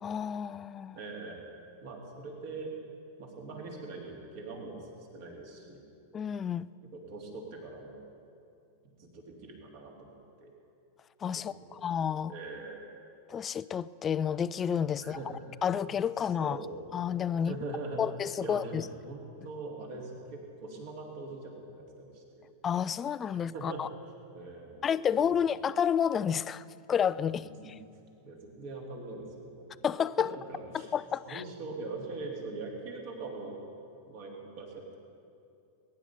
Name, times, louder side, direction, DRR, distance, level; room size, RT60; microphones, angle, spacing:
voice 1, 0.0-1.0 6.1-6.7 11.2-12.3 13.3-15.2 15.6-16.6 16.9-17.6 18.0-18.8 22.6-23.9 24.8-27.4 29.8-30.3 30.7-31.4, left 8 dB, 25° left, 17 dB, 0.3 m, -30 dB
voice 2, 0.9-1.5 1.8-2.8 3.2-4.9 5.1-5.8 6.9-8.0 8.8-10.5 11.6-11.8 12.3-12.9 14.9-15.4 16.4-16.9 17.3-18.0 18.4-22.5 23.3-23.8 24.3-24.8 25.1-25.4 27.6-27.7 28.2-29.9 30.2-30.9 31.2-33.6 34.0-35.0, right 3 dB, 50° right, 0 dB, 3.1 m, -42 dB
21.5 x 10.5 x 5.5 m, 2.5 s
figure-of-eight pair, 90°, 0 cm